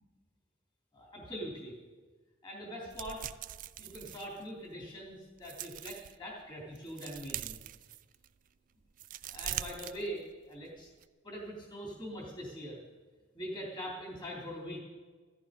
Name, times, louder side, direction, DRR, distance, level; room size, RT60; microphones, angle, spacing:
voice 1, 0.9-1.7 2.4-3.2 3.8-7.6 9.3-10.2 10.5-10.9 11.2-12.8 13.3-14.8, equal, 25° left, -3 dB, 3.5 m, -42 dB
sound 1, 2.9-4.8 5.3-6.2 6.6-8.4 8.8-10.6 10.9-11.0, right 11 dB, 40° right, 0.4 m, -42 dB
15.0 x 14.0 x 5.3 m, 1.4 s
head